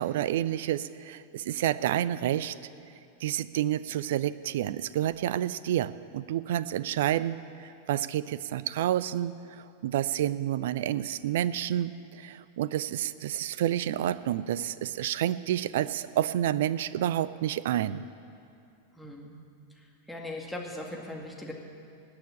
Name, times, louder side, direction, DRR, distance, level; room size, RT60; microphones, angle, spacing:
voice 1, 0.0-2.5 3.2-18.1, right 12 dB, 55° right, 16 dB, 0.4 m, -29 dB
voice 2, 18.9-19.4 19.7-21.5, left 1 dB, ahead, -2 dB, 2.1 m, -40 dB
19.0 x 6.8 x 8.8 m, 2.5 s
figure-of-eight pair, 90°, 0 cm